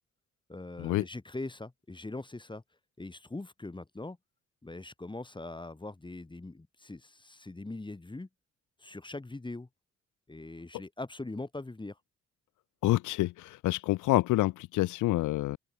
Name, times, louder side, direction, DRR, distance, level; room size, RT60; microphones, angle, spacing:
voice 1, 0.5-2.6 3.0-4.2 4.6-8.3 8.8-9.7 10.3-12.0, left 2 dB, 15° left, 4.3 m, -41 dB
voice 2, 12.8-15.6, left 17 dB, 80° left, 0.6 m, -27 dB
open air
cardioid pair, 90°, 30 cm